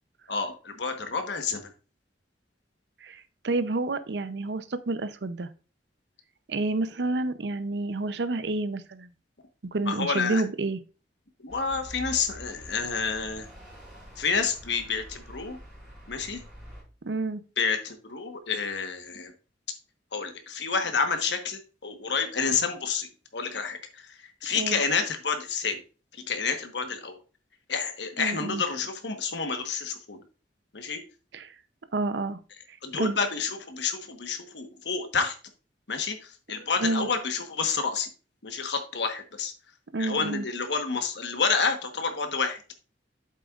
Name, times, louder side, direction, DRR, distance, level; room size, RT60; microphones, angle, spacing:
voice 1, 0.3-1.7 9.9-10.4 11.4-13.4 14.2-15.6 16.1-16.4 17.6-19.3 20.1-25.8 26.3-27.2 27.7-30.2 30.7-31.0 32.8-35.3 35.9-38.1 38.4-39.5 40.0-42.6, left 5 dB, 80° left, 6 dB, 1.2 m, -29 dB
voice 2, 3.0-5.5 6.5-9.1 9.7-10.8 17.0-17.4 24.5-24.8 28.2-28.6 31.3-31.5 31.9-32.4 32.7-33.2 36.5-37.1 39.9-40.4, right 2 dB, 70° right, 13 dB, 0.6 m, -29 dB
sound 1, 11.5-16.8, equal, 5° right, 4.7 m, -46 dB
8.4 x 7.5 x 2.4 m, 0.35 s
head